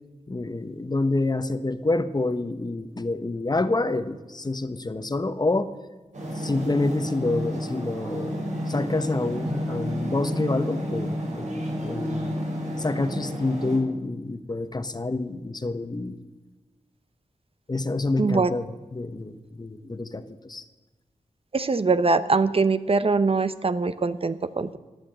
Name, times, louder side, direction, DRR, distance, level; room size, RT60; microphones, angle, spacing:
voice 1, 0.3-5.7 6.3-12.4 12.8-16.2 17.7-20.6, left 2 dB, 35° left, 11 dB, 1.1 m, -28 dB
sound 1, 6.1-13.8, equal, 70° right, 4.8 m, -31 dB
voice 2, 18.2-18.5 21.5-24.8, right 4 dB, 50° right, 12 dB, 0.8 m, -22 dB
17.0 x 10.0 x 7.9 m, 1.2 s
wide cardioid pair, 75°, 13 cm